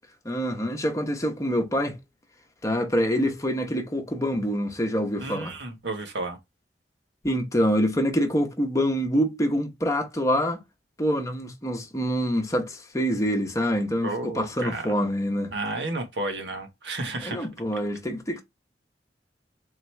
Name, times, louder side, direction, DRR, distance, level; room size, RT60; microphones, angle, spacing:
voice 1, 0.2-2.0 2.6-5.6 7.2-10.6 11.0-15.5 17.2-18.4, equal, 20° left, 0.8 m, -26 dB
voice 2, 5.2-6.4 14.0-14.9 15.5-17.5, right 2 dB, 90° right, 1.3 m, -32 dB
3.9 x 2.9 x 3.2 m
head